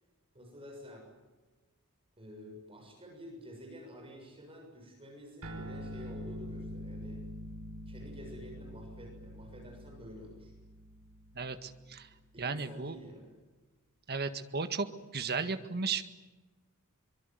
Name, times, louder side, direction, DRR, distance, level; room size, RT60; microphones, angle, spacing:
voice 1, 0.3-1.1 2.2-7.2 7.9-10.5 12.3-13.4, equal, 25° right, 1 dB, 6.8 m, -49 dB
sound 1, 5.4-12.2, equal, 80° right, 5.6 m, -45 dB
voice 2, 11.3-12.1 12.4-13.0 14.1-14.9 15.1-16.0, right 4 dB, 45° right, 9 dB, 1.7 m, -34 dB
24.5 x 23.5 x 9.3 m, 1.2 s
head